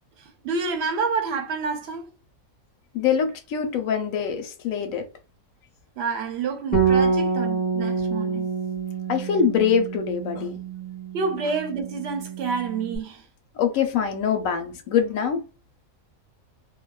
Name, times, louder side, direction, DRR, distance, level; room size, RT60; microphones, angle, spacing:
voice 1, 0.2-2.1 6.0-8.5 11.1-13.2, right 4 dB, 60° right, 0.8 m, -28 dB
voice 2, 2.9-5.0 9.1-10.6 13.6-15.4, left 7 dB, 85° left, 1.0 m, -24 dB
Bass guitar, 6.7-13.0, right 5 dB, 10° left, 0.7 m, -27 dB
2.5 x 2.3 x 2.2 m
omnidirectional pair, 1.4 m